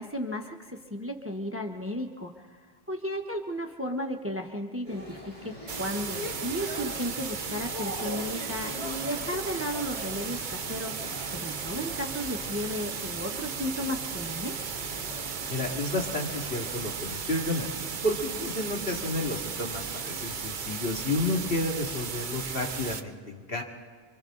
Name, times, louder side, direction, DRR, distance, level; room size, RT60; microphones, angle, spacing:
voice 1, 0.0-2.6 2.9-11.0 11.3-14.5, equal, 15° right, 3 dB, 1.1 m, -34 dB
sound 1, 4.8-16.9, left 1 dB, 35° left, 6.0 m, -42 dB
sound 2, 5.7-23.0, right 6 dB, 55° right, 0.9 m, -35 dB
voice 2, 15.5-17.7 18.0-23.6, left 2 dB, 65° left, 0 dB, 2.7 m, -31 dB
27.5 x 25.0 x 3.9 m, 1.5 s
omnidirectional pair, 1.0 m